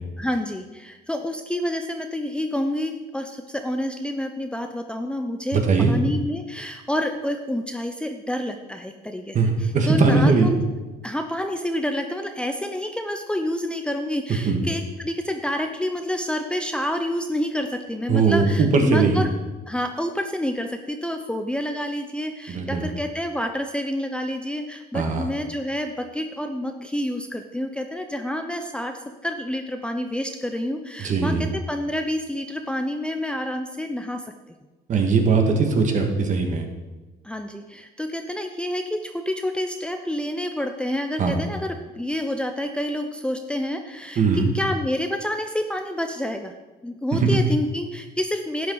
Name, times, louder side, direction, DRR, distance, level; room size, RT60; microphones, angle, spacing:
voice 1, 0.2-5.6 5.9-10.6 11.0-19.3 19.7-28.9 29.2-34.2 37.2-46.5 46.8-48.7, left 1 dB, 5° left, 5 dB, 0.6 m, -28 dB
voice 2, 5.5-5.9 9.3-10.5 14.4-14.6 18.1-19.2 22.5-22.8 24.9-25.3 31.0-31.5 34.9-36.6 41.2-41.4 44.2-44.5 47.1-47.4, right 4 dB, 45° right, 3 dB, 1.8 m, -20 dB
11.5 x 8.5 x 3.9 m, 1.2 s
cardioid pair, 110°, 17 cm